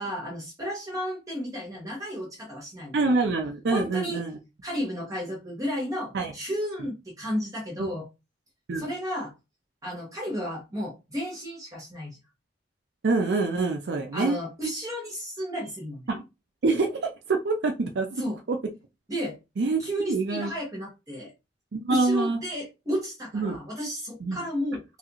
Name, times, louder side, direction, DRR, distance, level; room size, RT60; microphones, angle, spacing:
voice 1, 0.0-3.1 3.7-4.2 4.6-8.1 8.8-9.3 9.8-12.2 14.1-16.1 18.2-18.4 19.1-19.4 19.8-21.3 21.9-25.0, equal, 20° right, -4 dB, 0.9 m, -33 dB
voice 2, 2.9-4.4 6.1-6.3 7.8-7.9 8.7-8.8 13.0-14.4 16.1-16.2 16.6-18.2 18.5-18.6 19.6-19.8 20.1-20.5 21.7-22.4 23.3-23.6 24.2-24.4, right 3 dB, 70° right, 3 dB, 0.5 m, -25 dB
3.0 x 2.5 x 2.8 m, 0.25 s
head